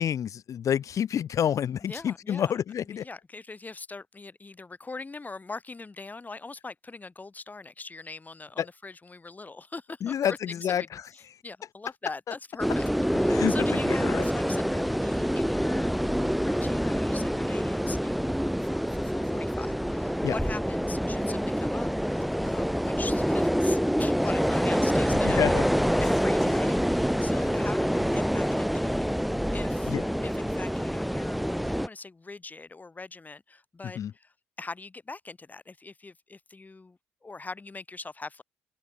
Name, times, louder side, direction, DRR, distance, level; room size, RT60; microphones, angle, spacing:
voice 1, 0.0-3.0 8.6-8.7 10.0-11.0 12.3-12.4 13.3-14.3 20.2-20.3 25.2-25.6 29.9-30.0 33.9-34.1, left 9 dB, 55° left, 3.4 m, -28 dB
voice 2, 1.8-2.5 2.8-10.9 11.1-12.9 13.1-15.9 16.4-18.2 18.6-25.4 26.0-29.0 29.5-29.9 30.2-34.3 34.6-38.4, left 3 dB, 25° left, 4.4 m, -42 dB
sound 1, 12.6-31.9, equal, ahead, 1.7 m, -26 dB
open air
hypercardioid pair, 50°, 7 cm